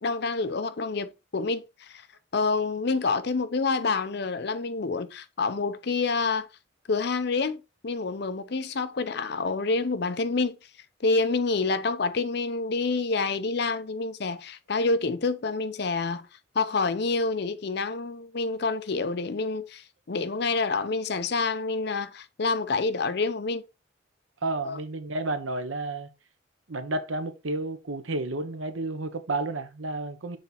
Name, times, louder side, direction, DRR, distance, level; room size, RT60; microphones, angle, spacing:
voice 1, 0.0-2.0 2.3-6.5 6.9-10.6 11.0-16.3 16.5-23.6 24.6-24.8, left 3 dB, 55° left, 0.6 m, -28 dB
voice 2, 24.4-26.1 26.7-30.4, right 2 dB, 80° right, 1.0 m, -31 dB
6.5 x 4.1 x 4.2 m
head